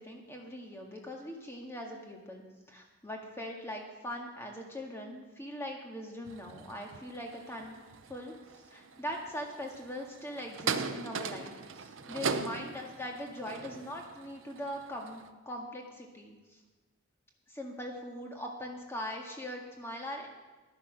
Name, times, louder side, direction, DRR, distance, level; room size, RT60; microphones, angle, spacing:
voice 1, 0.0-7.7 8.1-16.6 17.5-20.3, equal, 10° left, 0 dB, 1.7 m, -41 dB
sound 1, 6.3-15.3, right 5 dB, 65° right, 0.7 m, -40 dB
12.0 x 9.9 x 6.2 m, 1.2 s
head